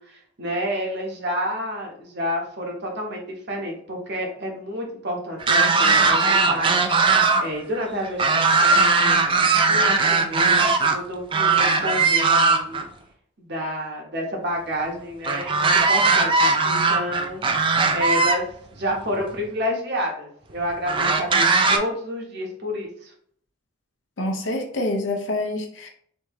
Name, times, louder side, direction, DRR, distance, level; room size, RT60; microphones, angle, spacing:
voice 1, 0.0-6.8 7.4-9.2 9.7-12.8 13.4-17.4 17.9-18.5 18.7-23.1, equal, 60° right, 0 dB, 1.0 m, -29 dB
sound 1, 5.4-7.4 7.7-11.0 11.3-12.8 15.2-18.4 19.3-19.4 20.9-21.8, right 4 dB, 25° right, 0.3 m, -19 dB
voice 2, 24.2-25.9, left 1 dB, 65° left, 3 dB, 0.7 m, -26 dB
3.5 x 2.8 x 3.0 m, 0.62 s
head